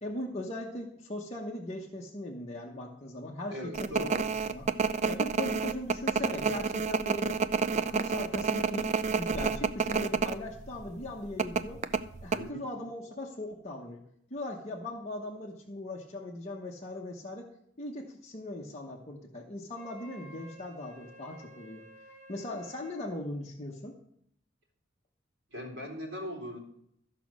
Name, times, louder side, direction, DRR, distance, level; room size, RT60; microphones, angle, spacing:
voice 1, 0.0-3.9 4.5-4.7 5.1-7.4 7.7-11.8 12.2-14.0 14.3-17.5 17.8-21.8 22.3-24.0, left 1 dB, 35° left, -2 dB, 1.0 m, -39 dB
voice 2, 3.5-4.3 12.4-12.7 25.5-26.6, left 1 dB, 65° right, -2 dB, 3.6 m, -39 dB
sound 1, 3.7-10.4 10.7-10.8 11.4-12.4, right 5 dB, 35° right, 0.3 m, -29 dB
Wind instrument woodwind instrument, 19.7-23.1, right 2 dB, 10° right, 5.3 m, -52 dB
13.0 x 5.2 x 6.1 m, 0.71 s
head